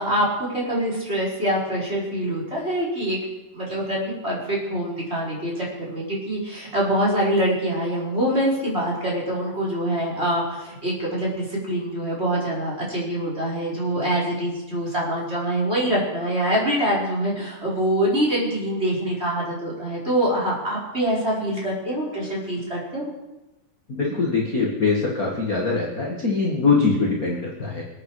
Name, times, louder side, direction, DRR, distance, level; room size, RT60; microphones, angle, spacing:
voice 1, 0.0-3.2 3.5-23.0, right 1 dB, 20° right, -5 dB, 5.2 m, -25 dB
voice 2, 24.0-27.8, left 4 dB, 30° left, -2 dB, 2.1 m, -22 dB
25.5 x 9.6 x 5.0 m, 0.99 s
omnidirectional pair, 3.7 m